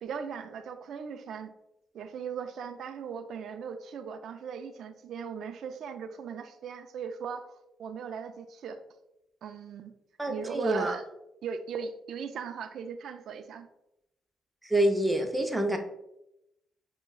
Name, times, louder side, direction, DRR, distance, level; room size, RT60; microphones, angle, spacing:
voice 1, 0.0-1.5 1.9-7.5 7.8-8.8 9.4-9.9 10.3-11.0 11.4-13.7, right 6 dB, 70° right, 8 dB, 0.4 m, -38 dB
voice 2, 10.2-11.0 14.6-15.8, right 1 dB, 10° right, 3 dB, 0.5 m, -27 dB
5.9 x 2.2 x 2.2 m, 0.85 s
cardioid pair, 90°, 0 cm